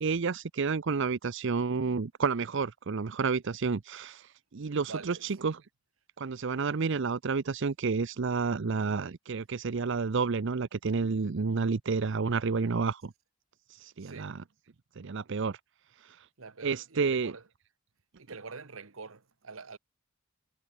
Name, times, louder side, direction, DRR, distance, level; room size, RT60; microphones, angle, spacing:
voice 1, 0.0-5.6 6.2-13.1 13.7-14.4 15.0-15.6 16.0-16.3 16.6-17.3, right 4 dB, 65° right, 0.6 m, -30 dB
voice 2, 4.8-5.5 14.0-14.3 16.4-17.4 18.2-19.8, right 4 dB, 90° right, 1.3 m, -45 dB
head